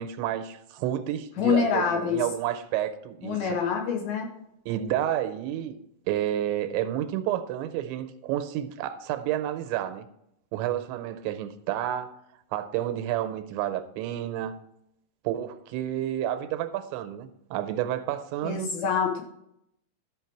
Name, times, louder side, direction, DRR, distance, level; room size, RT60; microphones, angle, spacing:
voice 1, 0.0-3.6 4.7-5.8 6.1-10.1 10.5-12.2 12.5-14.6 15.2-18.7, right 12 dB, 90° right, 3.0 m, -30 dB
voice 2, 1.4-2.2 3.2-4.3 18.4-19.2, left 7 dB, 70° left, 2.5 m, -26 dB
13.0 x 5.7 x 4.6 m
omnidirectional pair, 5.2 m